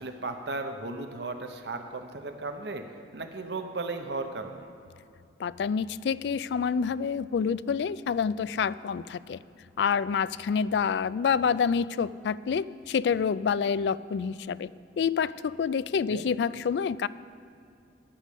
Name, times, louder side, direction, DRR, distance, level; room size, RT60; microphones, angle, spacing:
voice 1, 0.0-2.8 3.1-4.7 16.1-16.3, right 3 dB, 65° right, 6 dB, 0.8 m, -35 dB
voice 2, 5.4-9.4 9.8-14.7 15.0-17.1, left 6 dB, 65° left, 18 dB, 0.3 m, -27 dB
11.5 x 6.3 x 8.4 m, 2.5 s
head